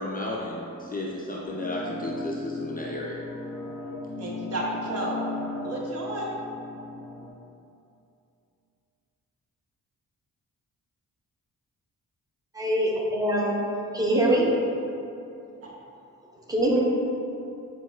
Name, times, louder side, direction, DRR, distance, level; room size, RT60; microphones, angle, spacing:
voice 1, 0.0-3.2, left 1 dB, 25° left, -3 dB, 0.4 m, -33 dB
sound 1, 1.4-7.3, left 3 dB, 80° left, 0.5 m, -36 dB
voice 2, 4.2-6.4 15.6-15.7, right 1 dB, 45° right, -3 dB, 0.8 m, -32 dB
voice 3, 12.5-13.6 13.9-14.5 16.5-16.9, right 1 dB, 10° right, -3 dB, 0.6 m, -23 dB
6.2 x 2.3 x 2.3 m, 2.6 s
cardioid pair, 70°, 34 cm